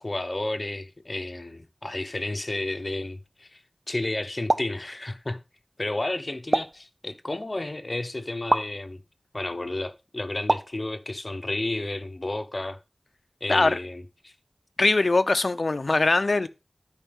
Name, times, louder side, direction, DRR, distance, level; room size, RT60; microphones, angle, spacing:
voice 1, 0.0-3.6 3.9-5.4 5.8-9.0 9.3-12.8 13.4-14.3, left 2 dB, 50° left, 1.1 m, -32 dB
sound 1, 4.5-4.8 6.5-6.9 8.5-8.7 10.5-10.8, right 2 dB, 50° right, 0.7 m, -24 dB
voice 2, 14.8-16.5, left 3 dB, 75° left, 0.7 m, -21 dB
12.5 x 5.2 x 3.6 m
wide cardioid pair, 55°, 0 cm